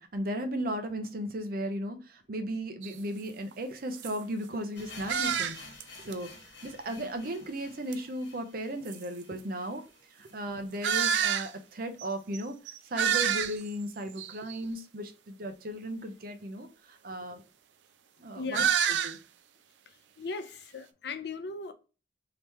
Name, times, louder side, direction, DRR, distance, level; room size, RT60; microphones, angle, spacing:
voice 1, 0.0-5.6 6.0-6.3 6.6-9.8 10.2-12.6 12.9-17.4 18.2-18.6 19.0-19.2, right 1 dB, 55° right, 0.7 m, -36 dB
sound 1, 2.8-2.9 3.5-3.6 3.9-4.1 5.1-5.8 6.1-6.2 7.9-8.0 8.9-9.0 10.8-11.5 12.0-12.1 12.3-12.4 12.7-13.7 14.2-14.6 18.5-19.2, right 8 dB, 85° right, 0.4 m, -28 dB
sound 2, 4.8-10.7 10.9-11.0 11.3-11.4 12.0-12.1, left 3 dB, 90° left, 1.2 m, -51 dB
voice 2, 18.3-18.7 20.2-21.7, left 4 dB, 70° left, 0.5 m, -37 dB
3.5 x 2.9 x 3.0 m
head